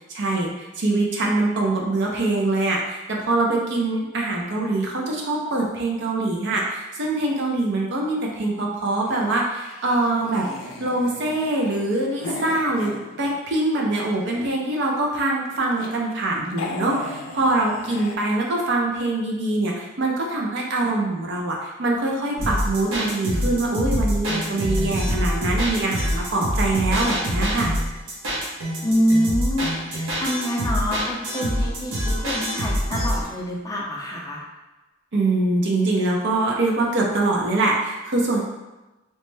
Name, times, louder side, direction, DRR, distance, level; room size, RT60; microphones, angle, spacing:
voice 1, 0.1-10.5 10.8-27.7 35.1-38.4, right 2 dB, 60° right, -1 dB, 0.6 m, -24 dB
sound 1, 9.0-13.6 14.0-14.8 15.4-15.9 16.2-16.3 16.5-18.2, left 3 dB, 80° left, 0.4 m, -36 dB
sound 2, 22.4-33.3, equal, 90° right, 0.9 m, -25 dB
voice 2, 28.8-34.4, equal, 20° left, -3 dB, 0.5 m, -25 dB
3.1 x 2.1 x 3.2 m, 1.1 s
head